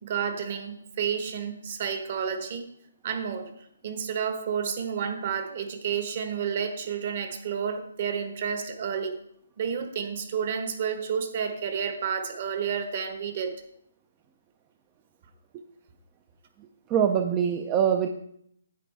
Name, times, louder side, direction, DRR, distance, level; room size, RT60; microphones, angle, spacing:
voice 1, 0.0-2.6 3.0-3.5 3.8-9.2 9.6-13.5, right 7 dB, 40° right, 6 dB, 1.3 m, -30 dB
voice 2, 16.9-18.1, right 8 dB, 20° right, 5 dB, 0.5 m, -23 dB
10.0 x 8.3 x 3.4 m, 0.70 s
hypercardioid pair, 160°, 0 cm